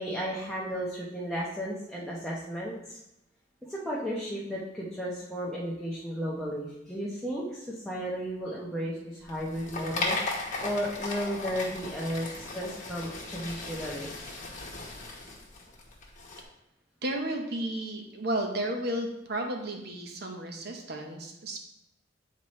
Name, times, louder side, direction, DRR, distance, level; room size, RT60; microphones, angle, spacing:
voice 1, 0.0-3.0 3.6-10.2 10.6-14.1, equal, ahead, -7 dB, 0.8 m, -34 dB
sound 1, 9.2-16.4, left 3 dB, 40° left, 1.2 m, -36 dB
voice 2, 17.0-21.6, right 1 dB, 55° right, 3 dB, 0.9 m, -33 dB
8.1 x 4.2 x 3.1 m, 0.84 s
head